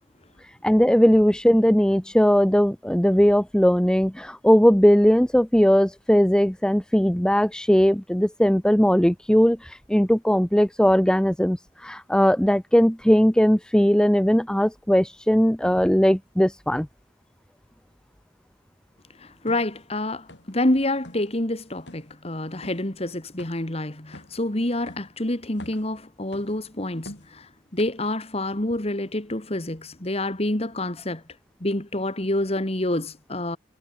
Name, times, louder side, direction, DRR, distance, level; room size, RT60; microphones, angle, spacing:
voice 1, 0.6-9.6 9.9-11.6 11.8-16.9, equal, 5° left, 0.8 m, -19 dB
voice 2, 19.2-31.2 31.6-33.6, left 1 dB, 35° left, 2.3 m, -27 dB
sound 1, 19.5-19.7 20.3-20.6 20.9-21.3 21.9-22.1 22.6-22.8 23.4-23.7 24.1-24.4 24.9-25.1 25.5-25.9 26.3-26.6 27.0-27.4 27.8-27.9, left 1 dB, 90° left, 6.9 m, -44 dB
head